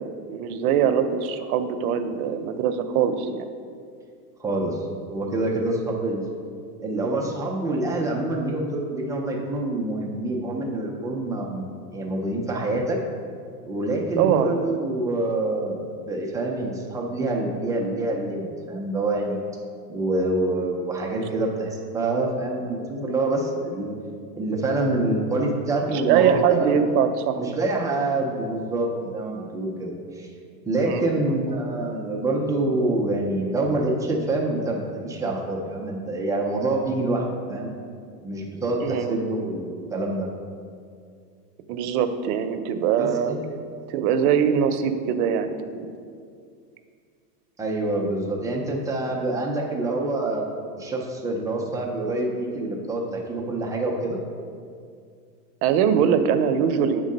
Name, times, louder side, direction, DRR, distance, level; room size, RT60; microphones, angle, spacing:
voice 1, 0.0-3.5 14.2-14.6 26.0-27.6 30.9-31.4 38.8-39.2 41.7-43.3 43.9-45.9 55.6-57.0, right 8 dB, 65° right, 9 dB, 0.7 m, -22 dB
voice 2, 4.4-4.8 5.1-6.2 6.8-11.7 11.9-13.0 13.7-19.4 19.9-23.9 24.3-26.8 27.4-30.3 30.7-37.7 38.2-40.3 43.0-43.4 47.6-50.4 50.8-54.2, right 2 dB, 10° right, -1 dB, 0.3 m, -26 dB
8.2 x 3.7 x 5.2 m, 2.2 s
supercardioid pair, 125°, 48 cm